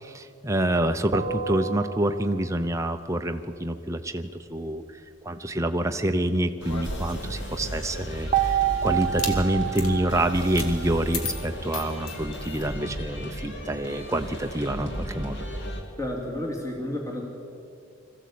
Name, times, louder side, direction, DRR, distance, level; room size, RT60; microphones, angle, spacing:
voice 1, 0.0-4.8 5.2-15.5, right 1 dB, 15° right, 6 dB, 0.8 m, -27 dB
sound 1, 1.1-2.7 8.3-11.7, right 10 dB, 30° right, 1.2 m, -29 dB
sound 2, 6.6-8.2 9.0-9.4 9.7-9.9 10.5-10.7 11.1-12.7, left 4 dB, 75° left, 2.1 m, -35 dB
sound 3, 6.6-15.8, equal, 50° left, 2.7 m, -35 dB
voice 2, 16.0-17.2, left 1 dB, 15° left, -1 dB, 2.6 m, -31 dB
21.5 x 15.0 x 8.6 m, 2.5 s
head